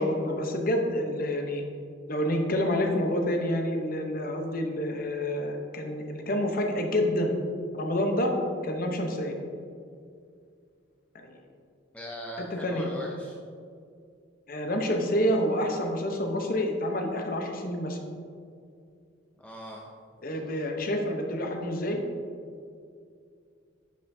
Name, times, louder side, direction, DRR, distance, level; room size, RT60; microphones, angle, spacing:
voice 1, 0.0-1.6 2.1-7.3 7.7-8.4 8.6-9.4 11.1-11.4 12.4-12.9 14.5-18.0 20.2-22.0, left 1 dB, 45° left, 3 dB, 0.8 m, -28 dB
voice 2, 11.9-13.3 19.4-19.9, equal, 5° left, -2 dB, 0.5 m, -39 dB
10.0 x 5.6 x 2.7 m, 2.3 s
head